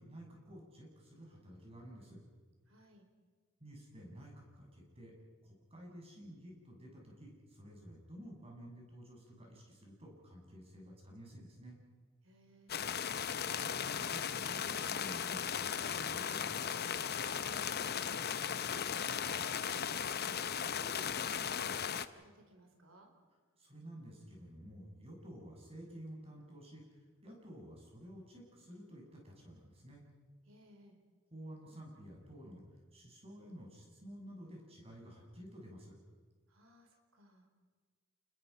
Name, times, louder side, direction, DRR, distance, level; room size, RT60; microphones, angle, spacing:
voice 1, 0.0-2.2 3.6-5.1 5.4-11.8 13.2-16.6 23.6-26.8 27.2-30.0 31.3-32.6 32.9-35.9, equal, 30° right, -1 dB, 7.2 m, -52 dB
voice 2, 2.7-3.1 12.2-12.9 17.1-23.1 30.5-31.0 36.5-37.5, right 1 dB, 70° right, 4 dB, 4.4 m, -59 dB
sound 1, 12.7-22.1, left 8 dB, 50° left, 0.9 m, -37 dB
29.5 x 21.0 x 5.7 m, 1.5 s
head